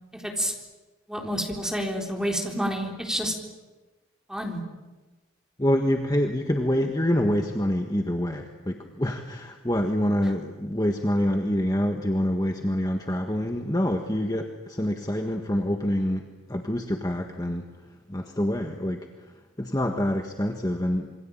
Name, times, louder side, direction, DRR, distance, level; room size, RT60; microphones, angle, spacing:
voice 1, 0.1-0.5 1.1-3.3 4.3-4.6, equal, 5° right, 1 dB, 3.9 m, -29 dB
voice 2, 5.6-17.7 18.1-19.1 19.6-21.1, equal, 20° left, 3 dB, 1.6 m, -26 dB
27.5 x 24.0 x 9.0 m, 1.2 s
head